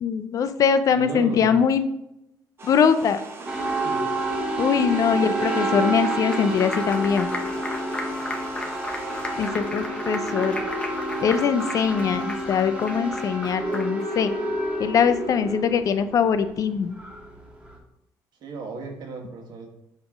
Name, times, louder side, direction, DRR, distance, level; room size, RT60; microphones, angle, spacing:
voice 1, 0.0-1.9 2.6-3.2 4.6-7.3 9.4-10.6 11.2-14.3 14.8-16.9, left 7 dB, 45° left, 11 dB, 0.4 m, -22 dB
voice 2, 0.9-1.6 3.8-4.0 18.4-19.7, right 4 dB, 60° right, 3 dB, 1.3 m, -34 dB
sound 1, 2.6-9.5, right 2 dB, 30° right, 1.0 m, -40 dB
sound 2, 3.5-17.7, right 1 dB, 10° right, 1.6 m, -29 dB
Applause, 5.5-14.2, left 1 dB, 15° left, 0.8 m, -36 dB
7.4 x 3.0 x 5.1 m, 0.85 s
cardioid pair, 125°, 8 cm